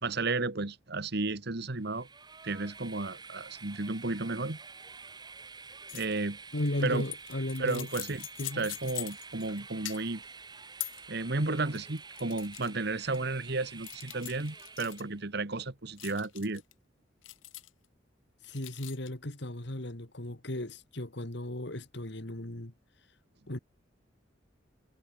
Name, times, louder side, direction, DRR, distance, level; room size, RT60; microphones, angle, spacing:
voice 1, 0.0-2.1 2.4-4.6 5.9-6.4 6.8-7.0 7.6-8.3 8.5-10.2 11.1-16.6, right 3 dB, 60° right, 1.5 m, -33 dB
Train, 1.8-15.3, right 4 dB, 20° right, 2.9 m, -49 dB
sound 1, 5.9-6.2 6.5-9.6 9.8-10.3 10.8-11.0 11.6-12.7 13.1-13.2 13.8-15.0 16.0-16.7 17.2-17.8 18.4-19.1, left 18 dB, 80° left, 0.6 m, -43 dB
voice 2, 6.5-7.9 8.4-8.7 18.4-22.7 23.5-23.6, left 1 dB, 65° left, 2.4 m, -35 dB
head